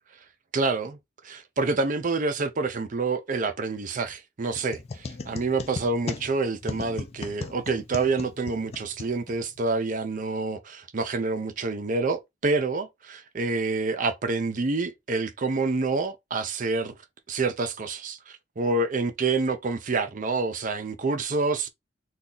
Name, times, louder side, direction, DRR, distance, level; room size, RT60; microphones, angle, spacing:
voice 1, 0.5-1.0 1.2-16.9 17.3-21.7, right 3 dB, 45° right, 0.5 m, -27 dB
sound 1, 4.5-9.7, left 3 dB, 35° left, 0.4 m, -37 dB
2.7 x 2.3 x 3.8 m
head